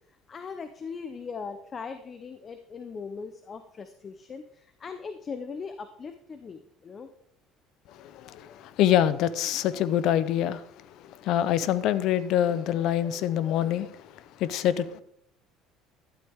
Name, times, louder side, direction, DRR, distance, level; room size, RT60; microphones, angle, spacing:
voice 1, 0.3-7.1, left 5 dB, 25° left, 0.7 m, -39 dB
voice 2, 7.9-15.0, left 11 dB, 60° left, 0.7 m, -26 dB
12.0 x 12.0 x 3.6 m
cardioid pair, 140°, 0 cm